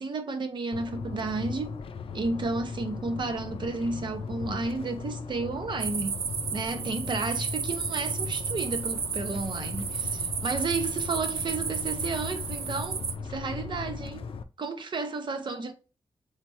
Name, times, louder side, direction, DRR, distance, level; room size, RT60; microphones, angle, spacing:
voice 1, 0.0-1.8 2.1-6.2 6.5-14.3 14.6-15.7, right 3 dB, 50° right, 0.8 m, -32 dB
sound 1, 0.7-14.4, left 5 dB, 65° left, 0.4 m, -38 dB
sound 2, 5.8-13.1, right 6 dB, 80° right, 0.5 m, -33 dB
4.2 x 3.3 x 3.2 m
wide cardioid pair, 160°, 10 cm